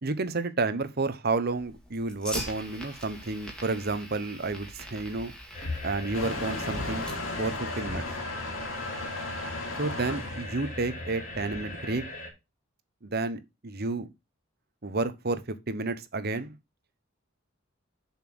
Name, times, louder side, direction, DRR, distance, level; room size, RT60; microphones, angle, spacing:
voice 1, 0.0-5.3 5.8-7.1 7.4-8.0 9.8-12.0 13.0-14.1 14.8-15.4 15.7-16.6, right 3 dB, 50° right, 1.0 m, -31 dB
Fire, 1.5-7.5, equal, 5° left, 2.2 m, -42 dB
sound 1, 5.5-12.3, left 2 dB, 40° left, 3.3 m, -39 dB
Motor vehicle (road) / Engine starting / Accelerating revving vroom, 6.1-12.0, left 2 dB, 80° left, 2.6 m, -36 dB
7.3 x 5.8 x 6.1 m
head